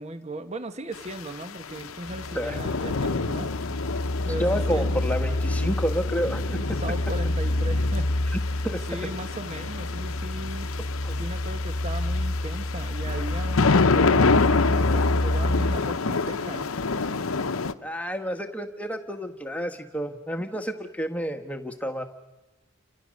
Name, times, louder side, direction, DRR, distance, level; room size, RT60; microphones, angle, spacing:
voice 1, 0.0-3.5 4.3-5.0 6.5-8.1 8.9-10.7 11.2-14.4 14.6-16.7, right 1 dB, 30° right, 9 dB, 1.1 m, -37 dB
sound 1, 0.9-17.7, left 4 dB, 80° left, 0.9 m, -28 dB
sound 2, 2.1-15.8, left 1 dB, 55° left, 1.1 m, -28 dB
voice 2, 4.4-6.8 8.6-8.8 11.0-11.2 17.8-22.0, equal, 5° left, 5 dB, 1.4 m, -30 dB
29.5 x 27.0 x 6.5 m, 1.1 s
head